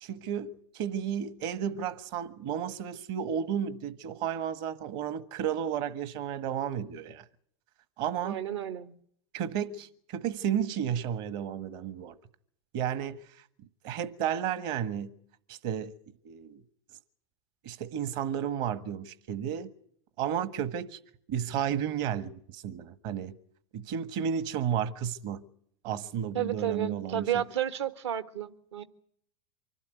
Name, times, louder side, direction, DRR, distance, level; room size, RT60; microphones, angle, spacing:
voice 1, 0.0-7.3 8.0-8.5 9.3-12.2 12.7-13.2 13.8-15.1 15.5-15.9 16.2-16.6 17.6-19.7 20.2-21.0 21.3-23.4 23.7-25.5 25.8-27.4, right 9 dB, 60° right, 1.6 m, -32 dB
voice 2, 8.2-8.9 26.3-28.8, right 10 dB, 75° right, 1.5 m, -32 dB
25.0 x 12.0 x 9.5 m
hypercardioid pair, 95°, 15 cm